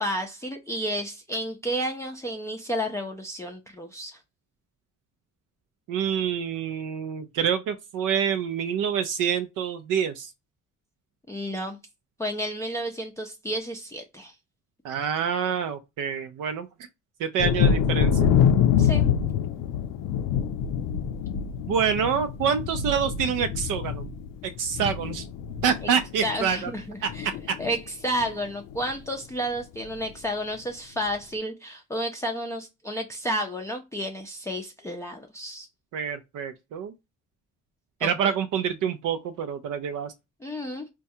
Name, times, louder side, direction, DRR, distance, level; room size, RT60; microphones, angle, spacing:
voice 1, 0.0-4.2 11.3-11.8 12.2-14.3 18.8-19.1 26.2-27.3 27.6-35.7 38.0-38.1 40.4-40.9, equal, 10° left, 0.4 m, -31 dB
voice 2, 5.9-10.3 14.8-16.7 17.2-18.3 21.7-24.1 24.4-25.3 25.6-26.7 27.0-27.1 27.5-27.6 35.9-36.9 38.0-40.1, right 7 dB, 70° right, 0.5 m, -27 dB
Thunder, 17.4-26.8 27.1-27.8 28.2-28.3 28.7-28.9, left 8 dB, 80° left, 0.5 m, -25 dB
4.5 x 2.3 x 2.7 m
cardioid pair, 95°, 33 cm